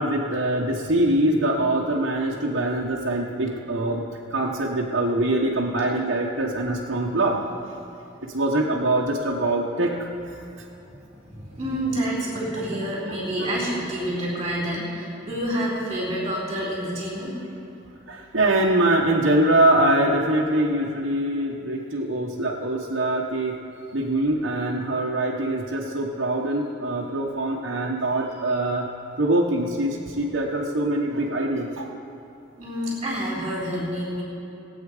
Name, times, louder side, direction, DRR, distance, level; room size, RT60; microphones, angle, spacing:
voice 1, 0.0-4.0 4.3-7.4 8.2-10.1 13.4-13.5 18.1-23.6 23.9-28.9 29.2-31.9, right 1 dB, 70° right, -4 dB, 1.2 m, -23 dB
voice 2, 11.0-17.3 32.6-34.2, equal, 25° right, -7 dB, 3.6 m, -28 dB
20.0 x 8.6 x 5.0 m, 2.8 s
head